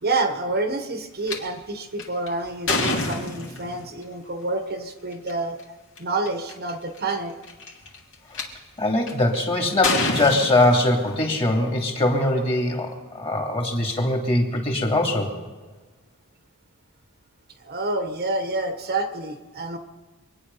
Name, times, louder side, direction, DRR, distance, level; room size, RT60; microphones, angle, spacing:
voice 1, 0.0-5.6 6.0-7.3 17.6-19.8, right 2 dB, 45° right, 7 dB, 1.2 m, -28 dB
sound 1, 1.3-1.4 2.0-3.9 5.1-5.3 6.0-6.1 6.3-6.7 7.4-8.4 9.1-9.4 9.8-11.3, left 2 dB, 60° left, 2.6 m, -26 dB
voice 2, 8.8-15.3, left 1 dB, 25° left, 1 dB, 2.8 m, -22 dB
25.5 x 9.9 x 5.6 m, 1.3 s
head